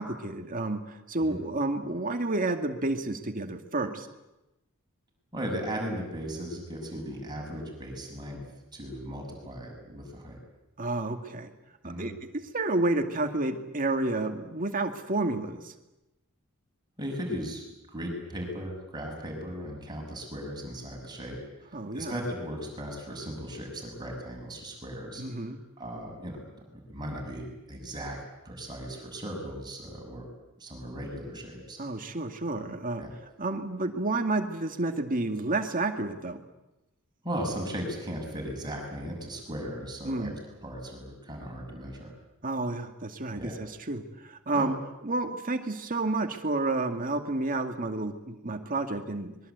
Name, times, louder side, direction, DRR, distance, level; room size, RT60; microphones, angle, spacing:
voice 1, 0.0-4.1 10.8-11.5 11.8-15.7 21.7-22.1 25.2-25.6 31.8-33.0 33.4-36.5 40.0-40.4 42.4-49.4, right 2 dB, 40° right, 5 dB, 2.2 m, -30 dB
voice 2, 5.3-8.4 8.7-10.4 11.8-12.1 17.0-17.6 17.9-21.4 21.9-25.2 25.5-26.6 26.9-28.2 28.4-30.3 30.6-31.8 33.0-33.1 37.2-40.3 40.6-42.1 43.4-43.6 44.5-44.7, equal, 20° right, 0 dB, 6.5 m, -37 dB
25.0 x 22.0 x 8.2 m, 0.96 s
head